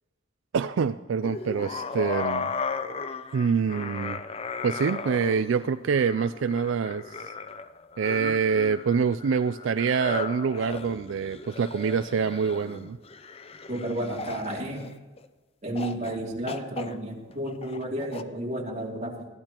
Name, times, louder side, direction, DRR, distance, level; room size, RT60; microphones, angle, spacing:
voice 1, 0.5-2.5 3.3-4.2 4.6-7.3 8.0-13.0, right 6 dB, 75° right, 11 dB, 0.4 m, -26 dB
sound 1, 1.2-15.3 15.7-16.2 16.5-18.2, left 4 dB, 30° left, 0.5 m, -36 dB
voice 2, 13.7-14.9 15.6-19.3, right 1 dB, 35° right, -1 dB, 2.5 m, -32 dB
20.5 x 14.0 x 3.0 m, 1.3 s
head